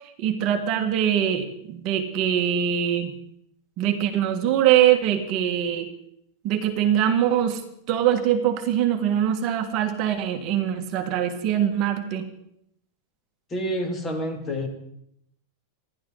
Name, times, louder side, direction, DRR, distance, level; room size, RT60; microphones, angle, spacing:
voice 1, 0.2-3.1 3.8-5.9 6.4-7.6 7.9-12.2, right 10 dB, 40° right, 5 dB, 1.7 m, -23 dB
voice 2, 13.5-14.7, equal, 20° left, 4 dB, 2.5 m, -28 dB
28.0 x 11.5 x 4.0 m, 0.74 s
supercardioid pair, 155°, 0 cm